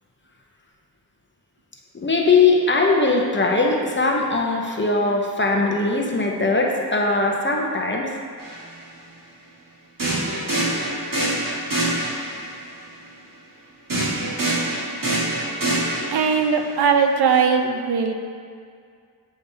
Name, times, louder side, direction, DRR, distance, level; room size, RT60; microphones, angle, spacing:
voice 1, 1.9-8.1, left 3 dB, 30° left, 0 dB, 0.7 m, -20 dB
sound 1, 8.4-8.6 10.0-12.5 13.9-16.5, right 1 dB, 60° right, 1.6 m, -24 dB
voice 2, 16.1-18.1, right 6 dB, 80° right, 5 dB, 0.6 m, -19 dB
8.2 x 5.0 x 2.7 m, 2.2 s
wide cardioid pair, 100°, 38 cm